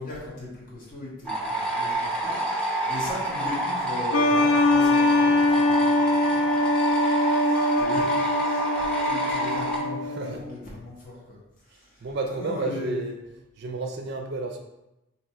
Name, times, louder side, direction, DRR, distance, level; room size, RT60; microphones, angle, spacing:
voice 1, 0.0-11.4 11.7-13.0, left 2 dB, 45° left, -5 dB, 1.0 m, -38 dB
sound 1, 1.3-9.8, right 2 dB, 5° left, 0.7 m, -28 dB
sound 2, 4.1-10.4, left 2 dB, 70° left, 0.3 m, -23 dB
voice 2, 10.1-10.4 12.0-13.2 13.6-14.6, right 3 dB, 55° right, 3 dB, 0.4 m, -31 dB
2.7 x 2.5 x 4.2 m, 0.94 s
head